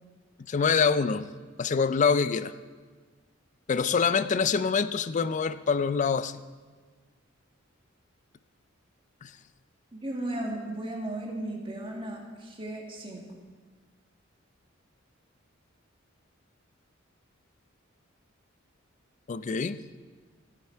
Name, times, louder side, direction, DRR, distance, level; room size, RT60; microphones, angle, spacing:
voice 1, 0.5-1.3 1.6-2.5 3.7-6.4 9.2-9.3 19.3-19.8, left 5 dB, 40° left, 14 dB, 0.4 m, -25 dB
voice 2, 9.9-13.2, right 1 dB, 25° right, 0 dB, 1.9 m, -35 dB
15.5 x 8.4 x 4.5 m, 1.5 s
head